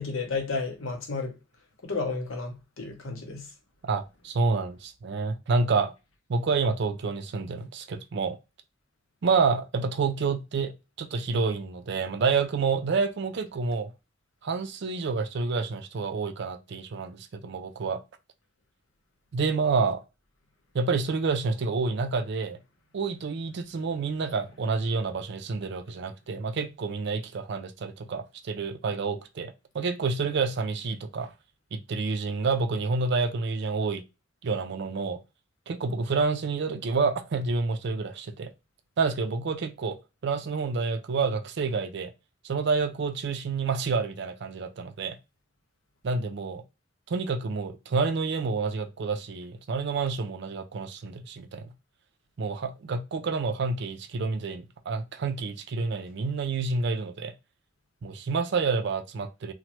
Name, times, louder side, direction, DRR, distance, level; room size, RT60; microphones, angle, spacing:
voice 1, 0.0-1.3 1.8-3.5, left 4 dB, 85° left, 0.8 m, -32 dB
voice 2, 3.8-5.9 6.3-8.4 9.2-13.9 14.4-18.0 19.3-20.0 20.7-22.6 22.9-31.3 31.7-34.0 34.4-35.2 35.7-38.5 39.0-40.0 40.2-42.1 42.4-45.2 46.0-46.6 47.1-51.7 52.4-57.3 58.0-59.5, right 4 dB, 60° right, 0.4 m, -28 dB
2.9 x 2.1 x 3.0 m
head